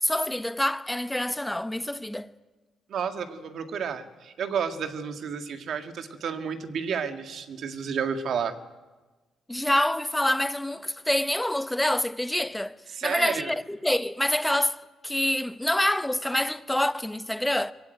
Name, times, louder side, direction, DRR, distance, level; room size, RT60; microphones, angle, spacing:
voice 1, 0.0-2.3 9.5-12.7 13.0-17.7, left 1 dB, 5° left, 0.9 m, -26 dB
voice 2, 2.9-8.6 12.9-13.6, right 6 dB, 65° right, 1.9 m, -31 dB
23.0 x 16.0 x 9.4 m
cardioid pair, 90°, 0 cm